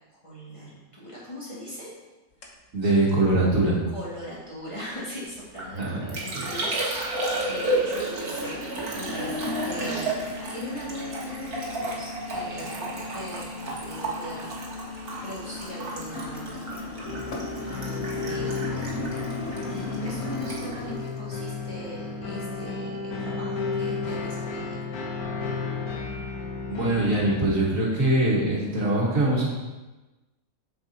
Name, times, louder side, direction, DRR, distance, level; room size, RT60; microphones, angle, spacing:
voice 1, 0.1-1.9 2.8-2.9 3.9-16.6 17.6-18.9 19.2-24.8, equal, 20° left, -6 dB, 2.0 m, -40 dB
sound 1, 2.4-2.5 3.0-3.1 3.8-3.9 5.1-5.2 5.6-6.2 6.5-21.0, left 2 dB, 60° left, 1.4 m, -37 dB
voice 2, 2.7-3.8 5.8-6.0 6.3-6.4 26.7-29.5, right 2 dB, 65° right, -4 dB, 2.2 m, -22 dB
Liquid, 5.3-22.0 22.2-22.8, right 2 dB, 90° right, 2.0 m, -33 dB
sound 2, 17.1-27.5, left 4 dB, 85° left, 1.5 m, -33 dB
7.0 x 6.6 x 4.3 m, 1.1 s
omnidirectional pair, 1.5 m